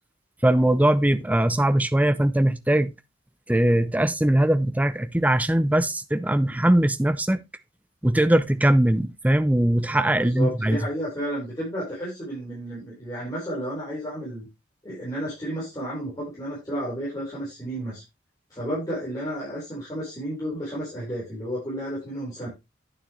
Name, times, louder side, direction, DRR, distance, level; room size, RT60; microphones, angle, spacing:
voice 1, 0.4-2.9 3.5-7.4 8.0-10.8, right 1 dB, 10° right, 0.5 m, -21 dB
voice 2, 10.1-14.5 14.8-18.0 18.5-22.5, equal, 20° left, 4.0 m, -32 dB
9.2 x 7.0 x 3.0 m
head